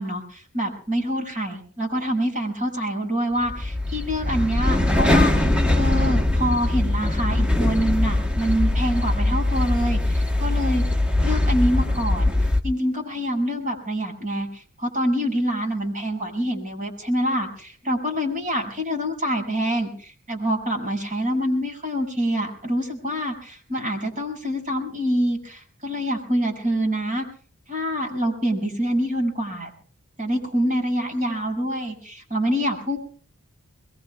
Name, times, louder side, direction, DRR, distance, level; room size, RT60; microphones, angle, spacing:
voice 1, 0.0-10.8 11.2-27.3 27.7-29.7 30.2-33.0, equal, 35° right, 1 dB, 6.9 m, -26 dB
sound 1, 3.4-12.6, left 1 dB, 5° right, 1.3 m, -21 dB
24.0 x 22.5 x 2.4 m, 0.43 s
head